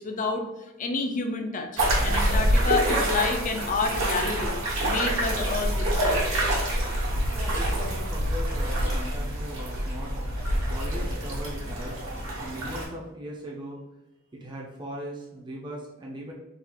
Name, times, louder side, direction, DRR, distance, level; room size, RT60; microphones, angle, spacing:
voice 1, 0.0-6.2, left 3 dB, 40° left, 5 dB, 0.4 m, -29 dB
sound 1, 1.8-12.8, right 1 dB, 80° right, 1.3 m, -26 dB
voice 2, 7.3-10.1 10.7-12.0 12.4-13.8 14.3-16.3, equal, 20° right, -4 dB, 0.6 m, -39 dB
3.9 x 2.4 x 2.9 m, 0.98 s
head